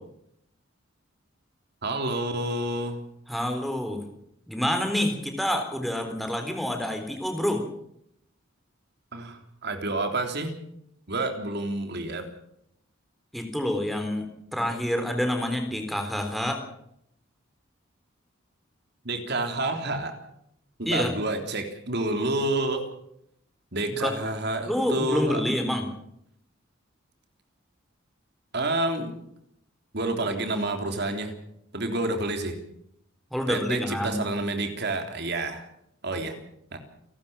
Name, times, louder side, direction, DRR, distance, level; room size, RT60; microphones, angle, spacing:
voice 1, 1.8-3.0 9.1-10.5 11.1-12.3 19.1-20.1 20.8-22.8 23.7-25.4 28.5-29.1 29.9-31.3 31.7-32.5 33.5-35.6 36.0-36.4 36.7-36.8, right 2 dB, 55° right, 5 dB, 3.5 m, -29 dB
voice 2, 3.3-4.0 4.5-7.6 13.3-14.3 14.5-16.6 20.9-21.2 24.0-24.1 24.6-25.9 33.3-34.2, left 1 dB, ahead, 4 dB, 3.8 m, -27 dB
29.0 x 12.5 x 7.3 m, 0.75 s
head